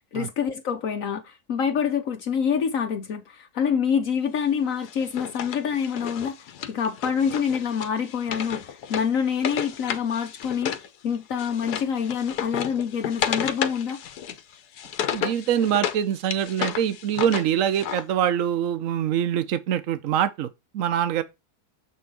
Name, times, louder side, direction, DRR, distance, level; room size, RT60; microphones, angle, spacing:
voice 1, 0.0-14.0, left 7 dB, 65° left, 1.1 m, -26 dB
Wood, 4.8-10.9 11.1-16.0 16.3-18.0, left 9 dB, 85° left, 1.3 m, -32 dB
voice 2, 15.1-21.2, right 9 dB, 60° right, 1.1 m, -24 dB
7.0 x 3.9 x 4.7 m
omnidirectional pair, 1.6 m